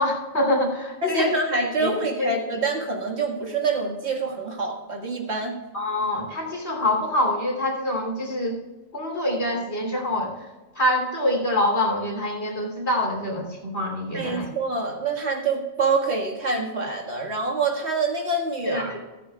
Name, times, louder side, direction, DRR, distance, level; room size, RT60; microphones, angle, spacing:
voice 1, 0.0-1.3 1.8-1.9 2.2-2.3 5.7-8.6 8.9-10.3 10.7-14.5 18.6-19.0, left 1 dB, 80° left, 0 dB, 3.4 m, -25 dB
voice 2, 1.0-5.6 14.1-18.9, right 3 dB, 75° right, 0 dB, 2.1 m, -26 dB
14.0 x 14.0 x 2.3 m, 1.2 s
omnidirectional pair, 1.1 m